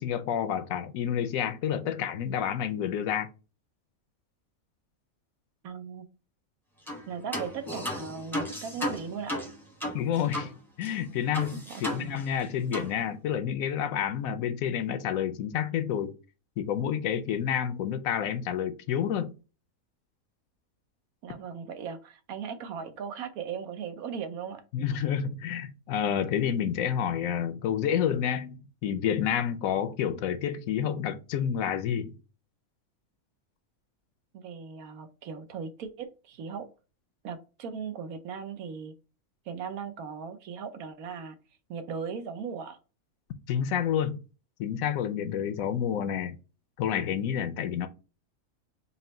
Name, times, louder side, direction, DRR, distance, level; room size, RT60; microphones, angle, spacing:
voice 1, 0.0-3.3 9.9-10.5 10.8-11.5 11.8-16.1 16.6-19.3 24.7-32.1 43.5-44.2 44.6-46.4 46.8-47.9, left 9 dB, 75° left, 1.0 m, -29 dB
voice 2, 5.6-6.1 7.1-9.4 11.7-12.3 21.2-24.6 34.3-36.7 37.2-38.9 39.5-41.4 41.7-42.8, right 6 dB, 80° right, 1.2 m, -38 dB
sound 1, 6.9-7.0 7.3-10.5 10.8-10.9 11.3-12.4 12.7-12.9, left 1 dB, ahead, 0.7 m, -34 dB
4.3 x 2.1 x 4.0 m
omnidirectional pair, 1.5 m